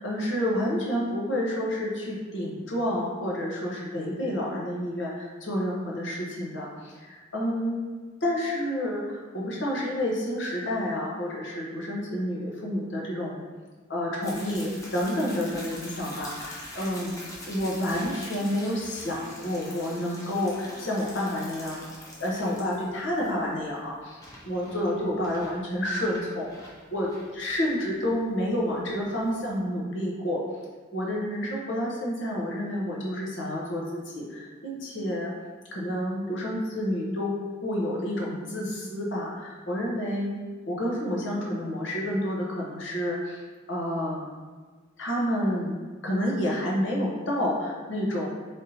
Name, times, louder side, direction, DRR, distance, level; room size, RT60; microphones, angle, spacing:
voice 1, 0.0-13.4 13.9-21.9 22.2-30.4 30.9-35.3 35.7-37.3 37.6-40.3 40.7-43.4 43.7-44.4 45.0-48.3, left 1 dB, 70° left, -3 dB, 0.9 m, -29 dB
sound 1, 14.2-29.6, left 1 dB, 15° left, 0.7 m, -44 dB
4.1 x 3.5 x 2.7 m, 1.4 s
head